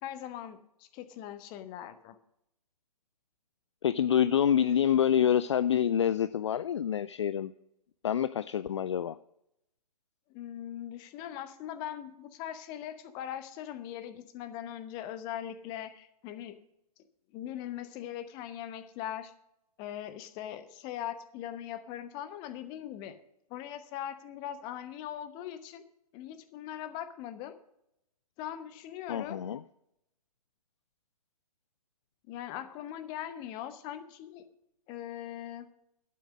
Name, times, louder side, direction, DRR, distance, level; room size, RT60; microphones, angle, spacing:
voice 1, 0.0-2.2 10.3-16.6 17.3-19.3 19.8-23.1 23.5-25.8 26.1-27.5 28.4-29.4 32.3-34.4 34.9-35.7, left 11 dB, 20° left, 11 dB, 0.9 m, -40 dB
voice 2, 3.8-7.5 8.0-9.2 29.1-29.6, left 9 dB, 45° left, 14 dB, 0.4 m, -27 dB
12.5 x 8.5 x 6.2 m, 0.79 s
figure-of-eight pair, 125°, 20 cm